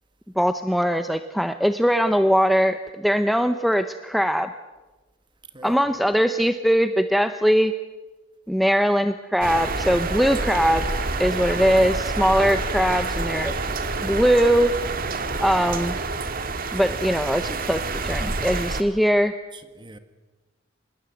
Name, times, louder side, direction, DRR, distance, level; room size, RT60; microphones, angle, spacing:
voice 1, 0.4-4.5 5.6-7.7 8.5-10.8 11.2-13.6 14.0-14.7 15.4-16.0 16.7-19.3, equal, ahead, 9 dB, 0.7 m, -21 dB
voice 2, 5.5-5.9 19.5-20.0, right 2 dB, 25° right, 10 dB, 1.7 m, -42 dB
sound 1, 9.4-18.8, right 3 dB, 50° right, 1.7 m, -28 dB
25.5 x 20.5 x 7.9 m, 1.2 s
head